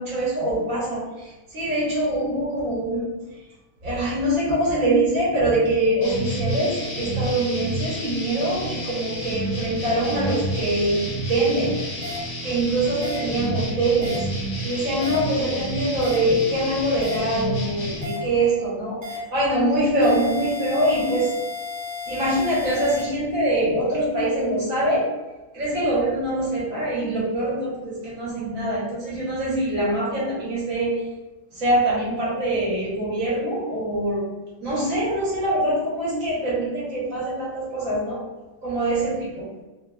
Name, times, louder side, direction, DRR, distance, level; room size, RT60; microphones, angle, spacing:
voice 1, 0.0-3.1 3.8-11.7 12.4-14.3 14.6-21.3 22.1-25.1 25.5-31.1 31.5-34.2 34.6-38.2 38.6-39.5, right 1 dB, 60° right, -7 dB, 1.4 m, -24 dB
sound 1, 6.0-18.0, right 1 dB, 50° left, 0.5 m, -30 dB
sound 2, 12.0-12.2 13.0-13.2 14.0-14.2 15.0-15.2 16.0-16.2 17.0-17.2 18.0-18.2 19.0-19.2 20.0-23.0, left 4 dB, 85° right, 1.4 m, -33 dB
3.3 x 2.3 x 2.3 m, 1.1 s
omnidirectional pair, 1.7 m